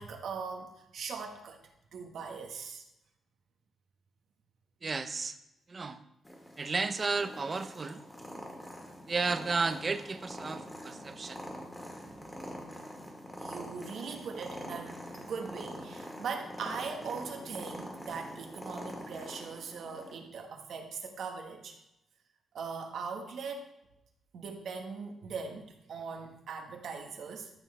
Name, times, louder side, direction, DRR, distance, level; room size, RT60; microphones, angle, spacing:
voice 1, 0.0-1.6 1.9-2.8 12.0-12.2 13.4-21.8 22.5-23.7 24.3-27.5, right 5 dB, 70° right, 4 dB, 1.5 m, -40 dB
voice 2, 4.8-5.4 5.7-6.0 6.6-8.0 9.1-11.5, right 4 dB, 35° right, 11 dB, 0.7 m, -33 dB
Purr, 6.2-20.2, equal, 10° left, 1.9 m, -45 dB
13.5 x 6.3 x 3.4 m, 0.88 s
cardioid pair, 105°, 0 cm